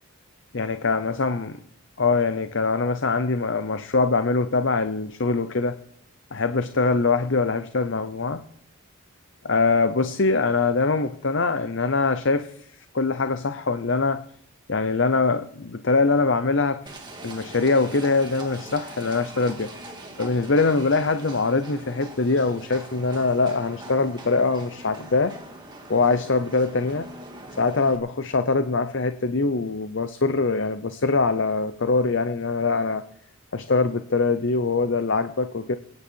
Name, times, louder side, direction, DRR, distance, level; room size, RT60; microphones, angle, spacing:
voice 1, 0.5-1.6 2.0-5.7 6.3-8.4 9.4-12.7 12.9-14.2 14.7-16.8 17.2-19.9 20.2-25.4 25.9-27.1 27.6-33.0 33.5-35.8, left 3 dB, 55° left, 10 dB, 0.7 m, -23 dB
Livestock farm animals working animals, 16.9-28.0, right 2 dB, 20° right, 2.3 m, -42 dB
26.0 x 9.8 x 4.6 m, 0.63 s
head